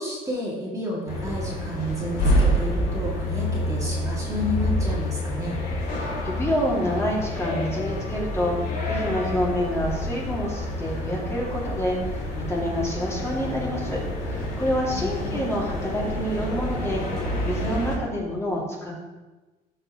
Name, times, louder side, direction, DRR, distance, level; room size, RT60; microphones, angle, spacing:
voice 1, 0.0-5.6 14.9-15.5, equal, 20° right, -4 dB, 2.1 m, -31 dB
sound 1, 1.1-18.0, left 1 dB, 65° left, 2.4 m, -28 dB
voice 2, 5.9-8.5 8.9-17.0 17.4-18.9, equal, 15° left, -4 dB, 2.3 m, -28 dB
13.0 x 5.6 x 3.0 m, 1.2 s
cardioid pair, 110°, 17 cm